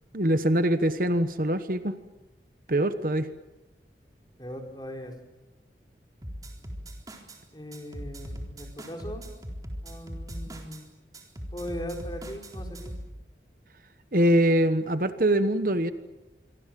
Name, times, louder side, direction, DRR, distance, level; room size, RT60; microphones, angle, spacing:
voice 1, 0.1-1.9 2.7-3.3 14.1-15.9, right 1 dB, 50° right, 10 dB, 1.2 m, -23 dB
voice 2, 4.4-5.1 7.5-9.2 9.8-10.9 11.5-12.9, equal, 25° left, 3 dB, 4.5 m, -39 dB
sound 1, 6.2-7.4 7.7-10.8 11.1-13.1, equal, 20° right, 3.8 m, -39 dB
27.0 x 24.0 x 7.7 m, 1.1 s
head